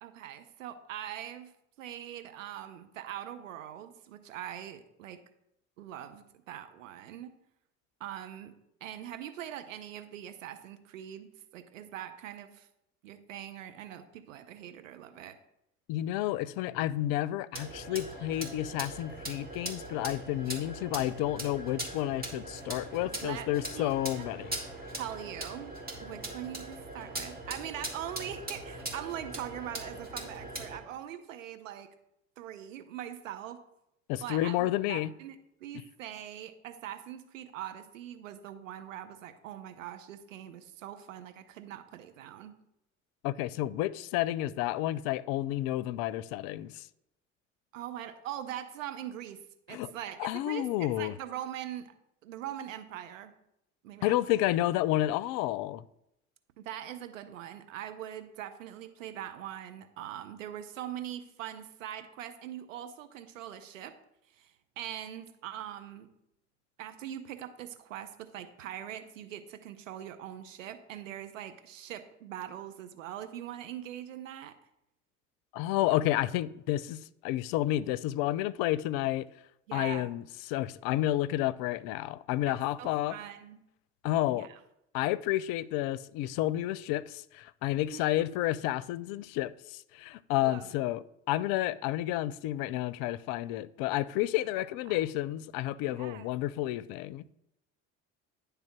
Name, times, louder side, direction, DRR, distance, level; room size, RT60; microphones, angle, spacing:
voice 1, 0.0-5.2 5.8-7.3 8.0-8.5 8.8-12.7 13.0-15.4 23.2-23.5 23.7-24.2 25.0-25.7 26.0-31.9 32.4-33.6 34.2-42.5 47.7-51.9 52.2-53.3 53.8-54.2 56.6-64.0 64.3-66.1 66.8-74.6 79.7-80.1 82.5-83.6 84.3-84.6 87.9-88.3 90.4-90.7 94.9-95.0 95.8-96.3, right 11 dB, 85° right, 0.8 m, -42 dB
voice 2, 15.9-24.6 34.1-35.1 43.2-46.9 49.7-49.9 50.2-51.1 54.0-55.8 75.5-79.3 79.7-83.2 84.0-84.5 84.9-97.2, left 14 dB, 65° left, 0.5 m, -31 dB
sound 1, 17.5-30.8, right 1 dB, 25° right, 2.3 m, -41 dB
10.0 x 3.4 x 6.0 m
hypercardioid pair, 65°, 38 cm